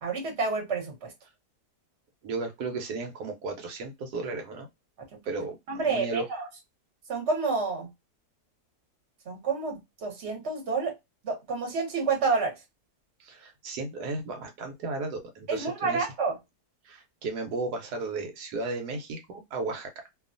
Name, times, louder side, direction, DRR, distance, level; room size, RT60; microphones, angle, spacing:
voice 1, 0.0-1.1 5.7-6.5 7.1-7.9 9.3-10.9 11.2-12.5 15.5-16.3, right 4 dB, 50° right, 1.3 m, -29 dB
voice 2, 2.2-4.7 5.3-6.2 13.2-16.1 16.8-20.1, right 3 dB, 85° right, 1.3 m, -34 dB
2.8 x 2.3 x 2.5 m
omnidirectional pair, 1.7 m